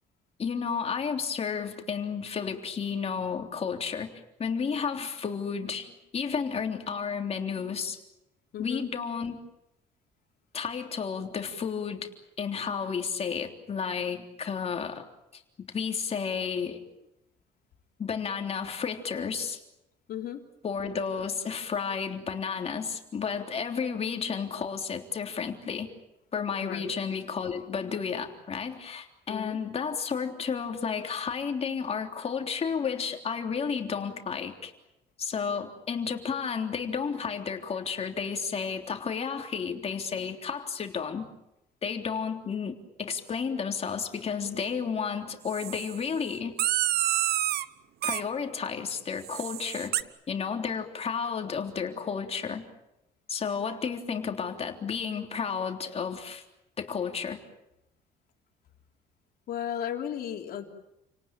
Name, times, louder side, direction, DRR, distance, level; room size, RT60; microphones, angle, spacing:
voice 1, 0.4-4.1 4.4-8.0 8.6-9.4 10.5-12.1 12.4-15.0 15.3-16.8 18.0-19.6 20.6-25.9 26.3-34.7 35.2-41.3 41.8-46.5 48.0-50.0 50.3-52.6 53.3-56.4 56.8-57.4, left 6 dB, 35° left, 4 dB, 3.5 m, -32 dB
voice 2, 8.5-8.9 20.1-20.4 26.6-26.9 29.3-29.6 59.5-60.7, left 10 dB, 65° left, 3 dB, 3.6 m, -35 dB
sound 1, 45.5-46.0 46.6-47.7 48.0-48.2 49.2-50.0, right 13 dB, 70° right, 1.0 m, -28 dB
30.0 x 18.5 x 9.0 m, 0.88 s
cardioid pair, 110°, 17 cm